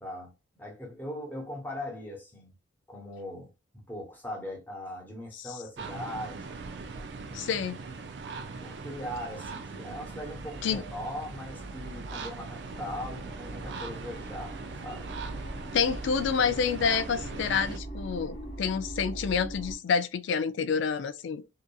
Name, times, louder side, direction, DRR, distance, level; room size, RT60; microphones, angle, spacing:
voice 1, 0.0-2.5 2.9-6.6 7.2-7.8 8.6-14.6 14.8-15.1, left 1 dB, 10° left, 0.9 m, -40 dB
sound 1, 5.8-17.8, right 4 dB, 60° right, 0.4 m, -41 dB
voice 2, 7.3-7.8 10.6-10.8 15.7-21.4, left 6 dB, 70° left, 0.3 m, -28 dB
sound 2, 9.9-19.8, right 1 dB, 35° left, 1.0 m, -42 dB
2.7 x 2.4 x 2.2 m
head